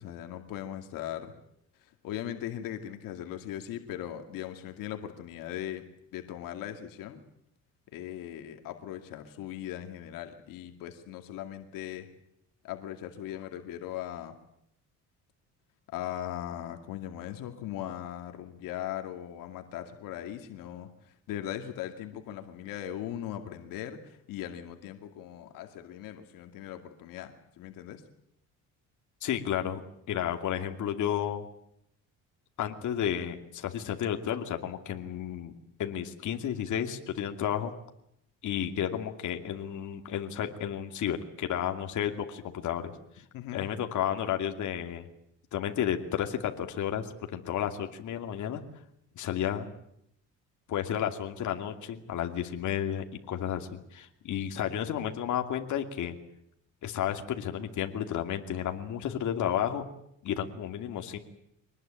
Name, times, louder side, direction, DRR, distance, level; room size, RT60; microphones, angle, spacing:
voice 1, 0.0-1.3 2.0-5.8 6.1-7.2 7.9-12.1 12.6-14.3 15.9-20.9 21.3-28.0 43.3-43.7, left 11 dB, 85° left, 6 dB, 2.4 m, -39 dB
voice 2, 29.2-31.4 32.6-35.5 35.8-37.7 38.4-42.9 43.5-45.1 45.5-48.6 49.2-49.7 50.7-56.1 56.8-59.8 60.2-61.2, left 10 dB, 60° left, 5 dB, 2.6 m, -32 dB
24.5 x 19.5 x 9.0 m, 0.75 s
cardioid pair, 115°, 33 cm